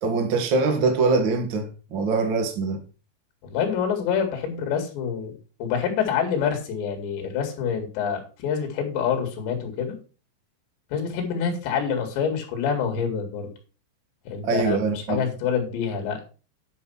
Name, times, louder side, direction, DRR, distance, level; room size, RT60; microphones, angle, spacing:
voice 1, 0.0-2.8 14.4-15.2, right 4 dB, 80° right, 1.0 m, -23 dB
voice 2, 3.4-5.3 5.6-10.0 10.9-13.5 14.3-14.8 15.1-16.2, left 7 dB, 75° left, 4.3 m, -26 dB
10.0 x 5.5 x 5.5 m
omnidirectional pair, 5.2 m